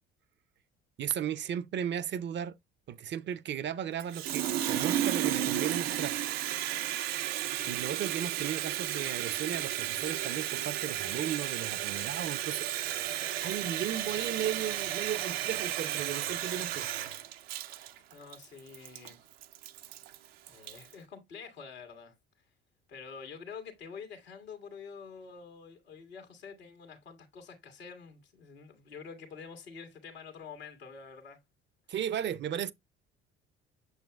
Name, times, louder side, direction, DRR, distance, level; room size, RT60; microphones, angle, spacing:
voice 1, 1.0-2.6 2.9-6.2 7.7-12.7 13.4-16.9 31.9-32.7, right 9 dB, 40° right, 0.5 m, -35 dB
Water tap faucet, 4.0-20.9, right 12 dB, 80° right, 0.6 m, -33 dB
voice 2, 7.5-7.8 18.1-19.2 20.5-22.1 22.9-31.4, left 5 dB, 85° left, 1.7 m, -47 dB
8.0 x 6.9 x 2.2 m
hypercardioid pair, 55°, 30 cm